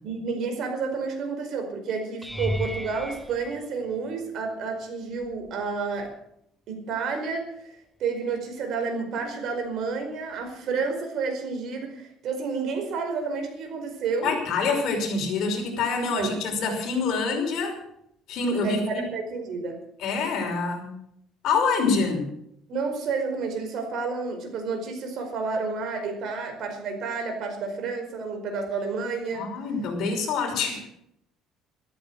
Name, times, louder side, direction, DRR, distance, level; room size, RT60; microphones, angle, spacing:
voice 1, 0.0-6.1 6.7-14.4 16.1-16.3 18.6-19.8 22.7-29.5, right 4 dB, 50° right, 5 dB, 4.9 m, -30 dB
sound 1, 2.2-4.5 5.2-5.6 6.0-6.1 10.5-10.6, equal, ahead, 0.9 m, -34 dB
voice 2, 14.2-17.8 18.3-19.0 20.0-20.9 21.4-22.3 29.3-30.8, left 4 dB, 55° left, 3 dB, 5.6 m, -26 dB
14.0 x 14.0 x 6.5 m, 0.71 s
cardioid pair, 150°, 0 cm